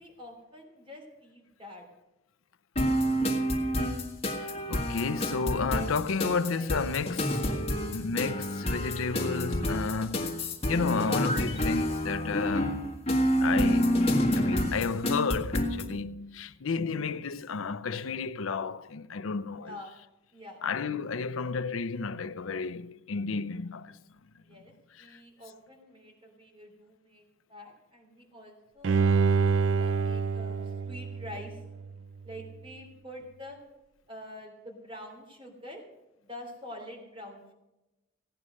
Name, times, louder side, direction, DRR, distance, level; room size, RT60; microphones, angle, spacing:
voice 1, 0.0-1.8 5.6-5.7 6.1-6.2 6.5-7.7 19.6-19.9 20.3-20.6 24.4-24.7 25.0-29.3 29.8-30.6 30.8-31.6 32.2-33.6 34.1-35.8 36.2-37.5, left 1 dB, 25° right, 3.2 m, -46 dB
sound 1, 2.8-15.9, equal, 30° left, 1.6 m, -28 dB
voice 2, 4.2-7.6 7.9-10.4 10.7-12.9 13.4-14.0 14.4-19.8 20.6-24.0 24.5-24.6 24.9-25.2, left 4 dB, 80° left, 0.6 m, -32 dB
Bowed string instrument, 28.8-32.0 32.4-32.5, right 5 dB, 65° right, 0.4 m, -27 dB
16.5 x 9.8 x 6.3 m
head